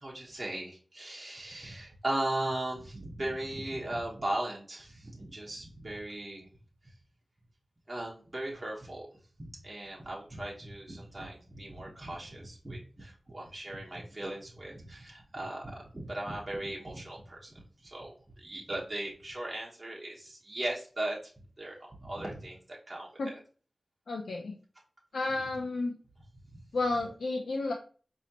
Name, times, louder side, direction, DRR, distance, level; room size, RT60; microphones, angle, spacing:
voice 1, 0.0-6.5 7.9-9.1 9.6-17.5 17.8-21.2 21.6-23.4, right 1 dB, 30° right, -4 dB, 1.1 m, -38 dB
voice 2, 24.1-24.5 25.1-26.0 26.7-27.7, left 3 dB, 80° left, 1 dB, 0.5 m, -31 dB
5.0 x 2.8 x 2.8 m, 0.39 s
wide cardioid pair, 70°, 0 cm